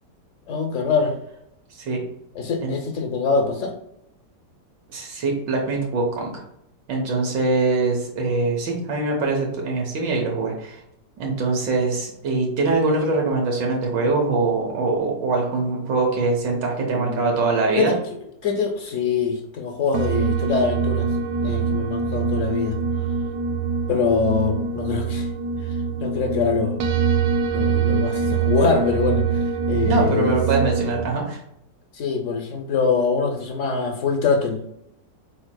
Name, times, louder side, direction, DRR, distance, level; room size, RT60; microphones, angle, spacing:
voice 1, 0.5-1.1 2.3-3.7 16.9-17.5 17.8-18.0 18.4-21.1 21.4-22.8 23.9-25.3 26.0-26.8 27.5-30.4 31.9-34.6, left 5 dB, 65° left, 4 dB, 0.8 m, -24 dB
voice 2, 4.9-6.4 6.9-10.8 11.2-17.9 29.8-31.4, right 3 dB, 90° right, -1 dB, 1.7 m, -23 dB
sound 1, 19.9-31.1, right 5 dB, 70° right, 0.8 m, -24 dB
5.2 x 4.1 x 2.2 m, 0.76 s
omnidirectional pair, 1.9 m